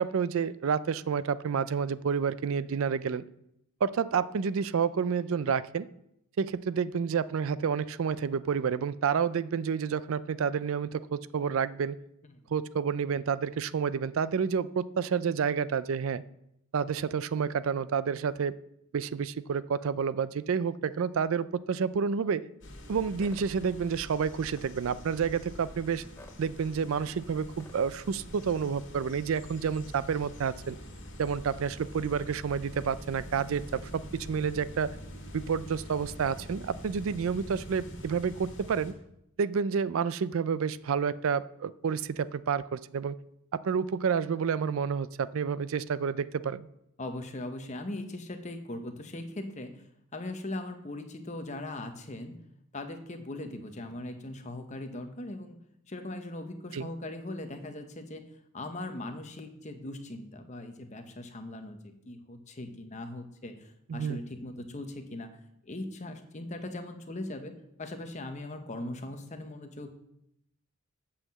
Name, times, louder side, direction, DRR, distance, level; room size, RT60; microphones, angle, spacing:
voice 1, 0.0-3.2 3.8-5.9 6.4-12.0 12.5-16.2 16.7-18.6 18.9-22.5 22.9-26.0 26.4-30.8 31.2-35.0 35.3-38.9 39.4-43.2 43.5-46.7 56.7-56.9 63.9-64.2, right 6 dB, 70° right, 17 dB, 0.4 m, -29 dB
sound 1, 22.6-38.9, equal, 55° left, 2.1 m, -45 dB
sound 2, 23.2-23.5 24.4-24.7 26.2-26.4 27.6-27.8, left 1 dB, 10° left, 0.5 m, -52 dB
voice 2, 47.0-49.8 50.1-52.3 52.7-55.6 55.9-58.3 58.5-65.4 65.6-69.9, left 1 dB, 35° left, 7 dB, 0.9 m, -40 dB
8.1 x 5.8 x 7.4 m, 0.79 s
head